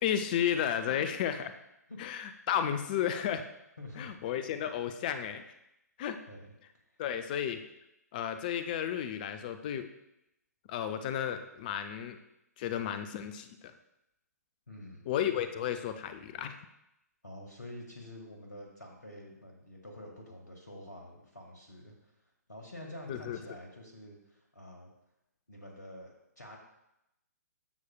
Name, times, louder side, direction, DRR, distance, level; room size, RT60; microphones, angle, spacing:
voice 1, 0.0-1.5 2.0-3.4 4.0-5.4 6.0-6.2 7.0-7.6 8.1-9.9 10.7-12.2 12.6-13.5 15.1-16.6 23.1-23.4, left 9 dB, 30° left, 9 dB, 0.5 m, -33 dB
voice 2, 3.8-4.2 6.3-6.5 6.9-7.0 14.7-15.1 17.2-22.1 22.5-24.9 25.5-26.6, left 1 dB, 80° left, 1 dB, 1.7 m, -48 dB
12.0 x 6.5 x 2.3 m, 0.85 s
figure-of-eight pair, 130°, 9 cm